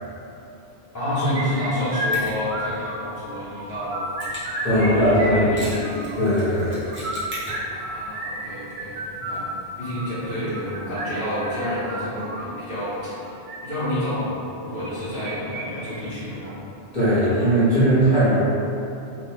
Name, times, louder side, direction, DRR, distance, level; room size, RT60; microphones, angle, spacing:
voice 1, 0.9-4.1 4.6-6.0 7.7-9.5 9.8-16.6, equal, 15° left, -14 dB, 1.2 m, -29 dB
sound 1, 1.3-3.2 3.6-4.9 5.1-6.2 6.9-12.5 13.2-13.6 14.8-15.6 15.9-16.0 16.4-16.5 17.1-17.5, equal, 60° right, 0.6 m, -32 dB
Mechanisms, 2.1-12.0, equal, 10° right, 0.9 m, -42 dB
voice 2, 4.6-5.5 6.2-6.8 16.9-18.4, equal, 35° left, -14 dB, 1.3 m, -19 dB
3.5 x 2.4 x 3.7 m, 2.9 s
omnidirectional pair, 1.2 m